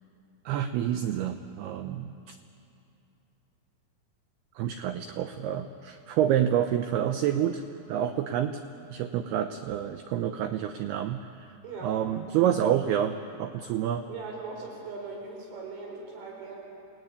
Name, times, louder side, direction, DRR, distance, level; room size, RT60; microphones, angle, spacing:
voice 1, 0.5-2.4 4.6-7.6 7.9-8.6 8.9-11.6 11.8-14.1, right 10 dB, 80° right, 8 dB, 2.3 m, -28 dB
voice 2, 11.6-12.0 14.1-16.6, right 4 dB, 55° right, -1 dB, 6.6 m, -39 dB
29.0 x 19.5 x 9.8 m, 2.7 s
omnidirectional pair, 5.5 m